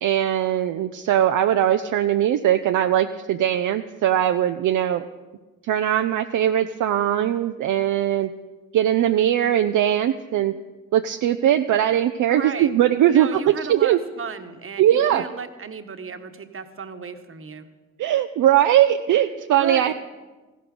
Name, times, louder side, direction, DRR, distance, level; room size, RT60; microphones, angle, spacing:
voice 1, 0.0-5.0 5.7-8.3 8.7-10.5 10.9-14.0 14.8-15.2 18.0-19.9, right 11 dB, 65° right, 7 dB, 0.6 m, -20 dB
voice 2, 12.3-12.7 13.1-17.7 19.5-19.9, right 5 dB, 40° right, 8 dB, 1.3 m, -34 dB
15.0 x 13.0 x 5.3 m, 1.2 s
supercardioid pair, 50°, 34 cm